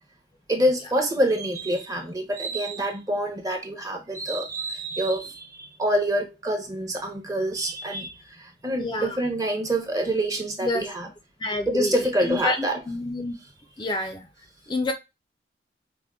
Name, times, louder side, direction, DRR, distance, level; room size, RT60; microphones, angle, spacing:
voice 1, 0.5-11.1 11.7-12.8, right 1 dB, 20° right, 0.7 m, -26 dB
voice 2, 8.7-9.2 10.6-10.8 11.4-12.0 12.3-12.6 12.9-13.4 13.8-14.3 14.7-14.9, left 2 dB, 25° left, 0.4 m, -27 dB
4.9 x 2.1 x 2.2 m
head